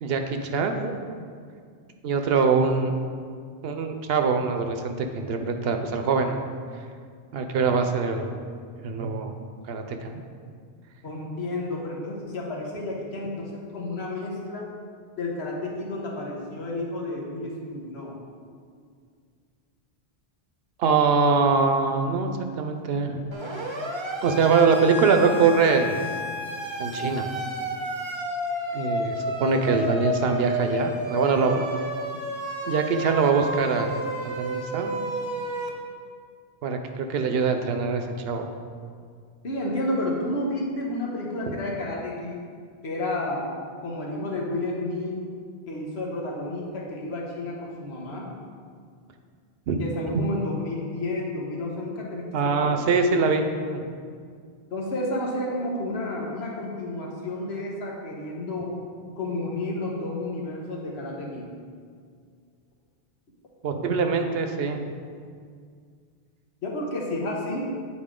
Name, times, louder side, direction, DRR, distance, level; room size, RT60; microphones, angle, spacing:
voice 1, 0.0-1.0 2.0-2.9 3.6-6.4 7.3-8.3 8.8-9.3 9.7-10.2 20.8-22.3 22.6-23.2 24.2-26.0 26.8-27.3 28.7-31.6 32.7-33.9 34.2-34.9 36.6-38.5 41.5-41.6 49.7-49.8 52.3-53.9 63.6-64.9, right 5 dB, 75° right, 6 dB, 0.8 m, -23 dB
voice 2, 11.0-14.7 15.2-18.1 39.4-42.4 42.8-43.5 43.8-45.2 45.7-48.3 49.8-52.7 54.7-58.7 59.1-61.5 66.6-67.7, left 1 dB, 90° left, -3 dB, 1.4 m, -31 dB
Siren, 23.3-35.7, equal, 30° right, 0.6 m, -31 dB
8.5 x 4.2 x 3.7 m, 2.1 s
omnidirectional pair, 1.0 m